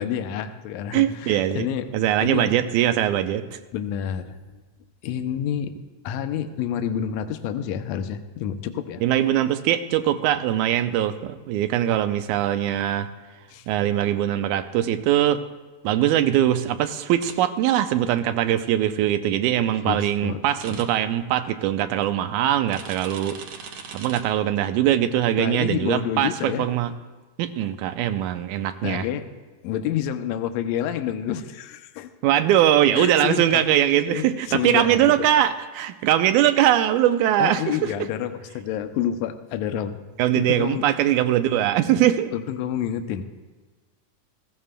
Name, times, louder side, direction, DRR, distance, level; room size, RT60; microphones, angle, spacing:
voice 1, 0.0-1.9 2.2-2.5 3.7-4.4 5.0-5.7 6.0-9.0 13.5-13.7 19.8-20.4 20.7-20.8 25.4-26.7 28.8-29.2 29.6-32.1 32.9-33.6 34.1-35.3 37.4-40.0 40.4-41.1 42.3-43.2, left 9 dB, 80° left, 8 dB, 1.7 m, -28 dB
voice 2, 0.9-1.7 1.9-3.6 9.0-13.1 13.7-15.4 15.8-23.4 23.9-26.9 27.4-29.1 32.2-37.9 40.2-42.3, right 11 dB, 85° right, 10 dB, 2.0 m, -21 dB
sound 1, 17.2-17.3 20.6-20.8 22.7-24.2, right 6 dB, 65° right, 1.8 m, -38 dB
18.0 x 15.0 x 2.2 m, 1.3 s
omnidirectional pair, 3.5 m